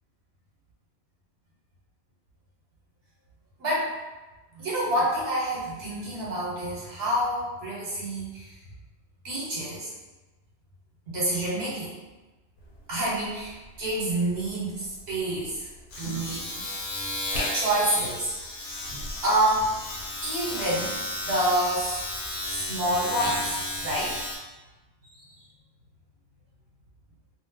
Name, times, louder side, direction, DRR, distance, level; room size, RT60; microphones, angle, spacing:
voice 1, 3.6-3.9 4.6-8.5 9.2-9.9 11.1-11.9 12.9-15.7 16.0-16.6 17.5-18.6 19.2-19.7 20.2-21.0 21.2-22.0 22.5-24.3 25.1-25.3, right 1 dB, 70° right, -7 dB, 1.2 m, -28 dB
Domestic sounds home sounds, 12.6-12.8 13.1-24.4, left 1 dB, 60° left, 0.7 m, -33 dB
2.4 x 2.2 x 3.5 m, 1.2 s
omnidirectional pair, 1.1 m